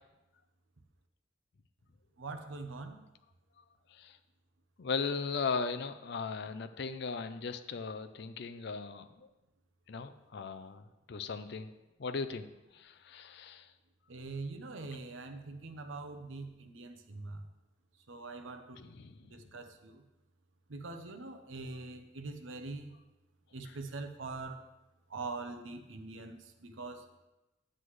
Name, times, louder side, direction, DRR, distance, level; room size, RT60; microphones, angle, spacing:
voice 1, 2.2-3.0 14.1-17.5 18.1-18.8 19.2-20.0 20.7-22.9 23.5-24.6 25.1-27.1, right 3 dB, 80° right, 7 dB, 0.8 m, -43 dB
voice 2, 4.8-9.3 9.9-10.8 11.1-11.7 12.0-12.5 12.7-13.7 18.8-19.2 23.6-23.7, left 5 dB, 60° left, 10 dB, 0.5 m, -37 dB
9.9 x 7.7 x 3.2 m, 1.0 s
head